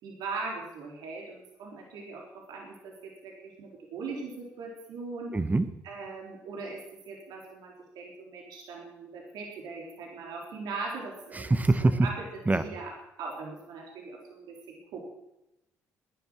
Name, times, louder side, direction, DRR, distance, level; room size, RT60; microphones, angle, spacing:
voice 1, 0.0-5.4 5.8-11.5 11.8-12.9 13.2-15.1, right 4 dB, 75° right, 0 dB, 4.0 m, -40 dB
voice 2, 5.3-5.7 11.3-12.1 12.5-12.6, right 2 dB, 20° right, 12 dB, 1.5 m, -24 dB
19.0 x 10.5 x 6.4 m, 0.89 s
hypercardioid pair, 55°, 7 cm